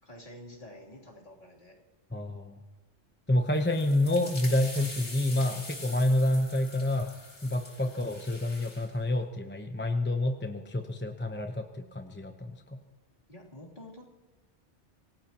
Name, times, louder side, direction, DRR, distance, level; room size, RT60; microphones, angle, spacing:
voice 1, 0.0-1.8 13.3-14.0, left 1 dB, 45° left, -4 dB, 3.5 m, -48 dB
voice 2, 2.1-2.6 3.3-7.1 7.4-12.8, left 1 dB, 10° left, 5 dB, 0.8 m, -28 dB
sound 1, 3.5-8.9, left 2 dB, 85° left, 3.7 m, -44 dB
27.0 x 18.0 x 3.0 m, 1.2 s
omnidirectional pair, 1.1 m